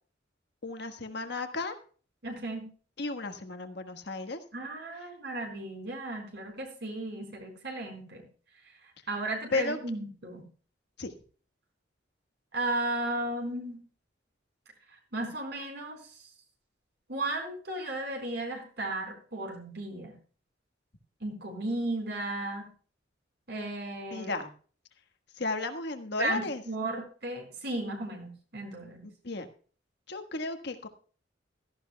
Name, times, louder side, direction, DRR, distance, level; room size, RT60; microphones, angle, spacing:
voice 1, 0.6-1.8 3.0-4.4 9.5-9.8 11.0-11.1 24.1-24.5 25.4-26.6 29.2-29.5 30.1-30.9, left 3 dB, 65° left, 7 dB, 1.5 m, -33 dB
voice 2, 2.2-2.7 4.5-8.3 9.1-10.4 12.5-13.8 15.1-16.0 17.1-20.1 21.2-22.7 23.5-24.3 26.2-29.1, right 2 dB, 60° right, 3 dB, 4.2 m, -35 dB
16.5 x 13.5 x 2.3 m, 0.40 s
head